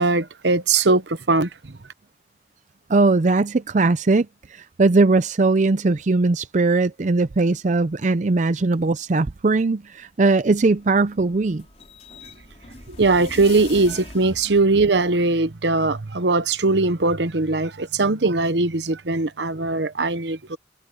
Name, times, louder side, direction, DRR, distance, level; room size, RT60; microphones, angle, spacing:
voice 1, 0.0-1.5 12.9-20.6, right 3 dB, 75° right, 1.0 m, -20 dB
voice 2, 2.9-11.6, right 3 dB, 45° right, 0.5 m, -20 dB
sound 1, 10.5-15.4, left 2 dB, 35° left, 4.2 m, -41 dB
head